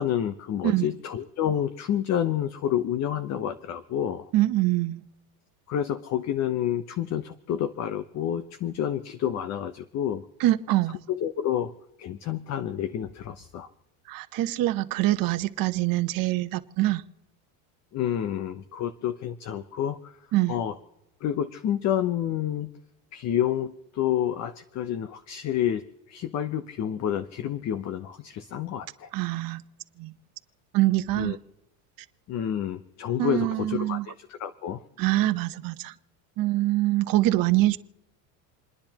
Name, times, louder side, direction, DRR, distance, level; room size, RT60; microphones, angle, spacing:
voice 1, 0.0-4.3 5.7-10.3 11.1-11.7 12.0-13.7 17.9-20.1 20.5-20.7 21.2-22.7 23.1-29.1 31.1-31.4 32.3-34.8, left 10 dB, 35° left, 0.8 m, -29 dB
voice 2, 4.3-5.0 10.4-11.0 14.1-17.0 20.3-20.6 29.1-29.6 30.0-30.1 30.7-31.4 33.2-34.1 35.0-35.9 36.4-37.8, right 16 dB, 50° right, 1.0 m, -24 dB
29.0 x 10.5 x 2.9 m
supercardioid pair, 125°, 45 cm